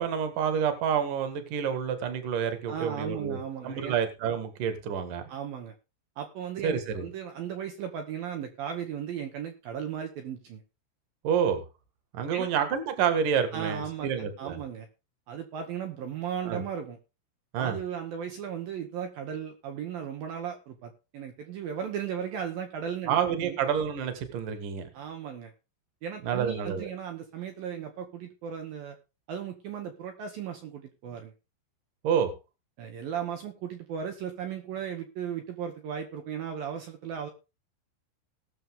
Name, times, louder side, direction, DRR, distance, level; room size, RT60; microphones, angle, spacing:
voice 1, 0.0-3.4 3.6-5.3 6.6-7.1 11.2-11.6 12.1-14.6 16.4-16.6 17.5-17.8 23.1-24.9 26.2-26.9 32.0-32.3, right 7 dB, 55° right, 8 dB, 2.5 m, -28 dB
voice 2, 2.7-4.0 5.3-5.7 6.2-10.6 12.3-12.5 13.5-14.9 15.3-17.0 17.6-23.2 23.4-23.6 24.9-25.5 26.0-29.0 29.3-31.3 32.8-37.3, right 8 dB, 75° right, 5 dB, 2.1 m, -36 dB
19.0 x 7.0 x 3.6 m, 0.30 s
omnidirectional pair, 6.0 m